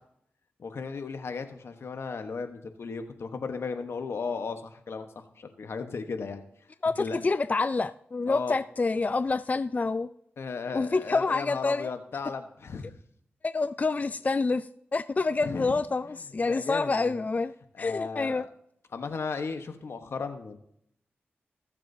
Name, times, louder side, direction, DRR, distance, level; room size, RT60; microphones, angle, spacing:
voice 1, 0.6-6.4 7.0-7.2 8.3-8.6 10.4-13.0 15.4-15.7 16.4-17.2 17.7-18.5 18.9-20.6, left 5 dB, 75° left, 1.2 m, -35 dB
voice 2, 6.8-10.1 10.7-11.9 13.4-17.5 17.8-18.5, left 3 dB, 35° left, 0.3 m, -27 dB
19.5 x 7.4 x 2.8 m
cardioid pair, 60°, 4 cm